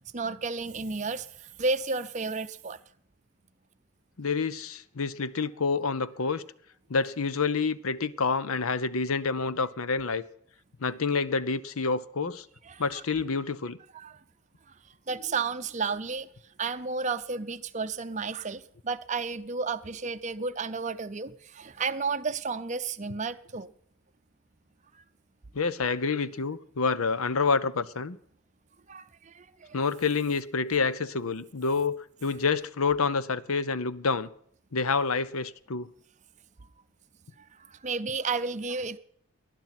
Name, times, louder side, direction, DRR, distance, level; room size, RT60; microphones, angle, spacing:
voice 1, 0.1-2.8 12.7-13.0 13.9-14.2 15.1-16.3 16.6-23.7 24.9-25.0 28.9-29.8 37.5-39.0, right 4 dB, 30° right, 0.6 m, -32 dB
voice 2, 4.2-6.4 6.9-10.2 10.8-12.5 12.8-13.8 25.5-28.2 29.7-34.3 34.7-35.9, left 4 dB, 75° left, 0.7 m, -28 dB
19.5 x 10.5 x 5.9 m
head